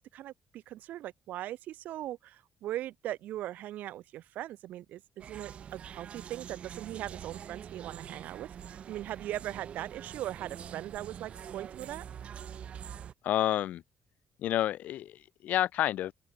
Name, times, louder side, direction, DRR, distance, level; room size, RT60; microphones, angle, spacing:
voice 1, 0.0-12.1, right 13 dB, 85° right, 7.0 m, -40 dB
sound 1, 5.2-13.1, right 8 dB, 45° right, 4.7 m, -45 dB
voice 2, 13.2-13.8 14.4-16.1, left 12 dB, 75° left, 5.0 m, -29 dB
open air
cardioid pair, 155°, 3 cm